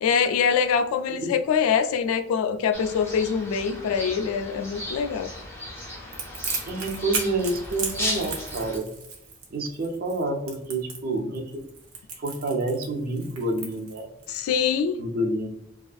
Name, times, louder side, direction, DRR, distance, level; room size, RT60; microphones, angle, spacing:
voice 1, 0.0-5.3 14.3-15.0, left 6 dB, 85° left, 10 dB, 0.3 m, -24 dB
sound 1, 2.7-8.8, left 1 dB, 10° left, 0.5 m, -36 dB
Crackle, 6.1-14.4, right 4 dB, 90° right, 0.7 m, -35 dB
voice 2, 6.7-8.9 9.5-11.6 12.2-14.1 15.0-15.5, right 2 dB, 45° right, 4 dB, 0.4 m, -28 dB
2.5 x 2.3 x 2.3 m, 0.80 s
head